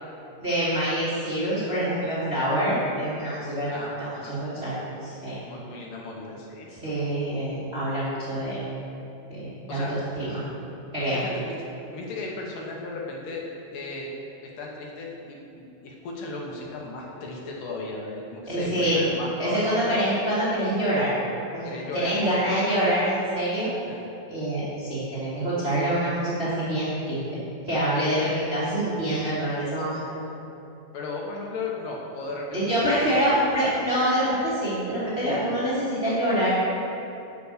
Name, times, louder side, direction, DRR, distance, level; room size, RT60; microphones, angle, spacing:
voice 1, 0.4-5.4 6.7-8.6 9.3-10.4 10.9-11.2 18.5-19.0 19.4-21.1 21.5-23.7 24.3-27.2 27.6-30.0 32.5-36.5, right 1 dB, 25° right, -11 dB, 1.3 m, -26 dB
voice 2, 3.7-4.3 4.8-4.9 5.4-6.7 9.7-9.9 11.1-11.5 11.9-13.4 13.7-14.1 14.4-20.0 21.6-22.5 23.9-24.1 30.9-32.6 32.9-33.1, left 3 dB, 75° left, -2 dB, 2.4 m, -35 dB
7.1 x 6.0 x 6.5 m, 2.9 s
omnidirectional pair, 4.2 m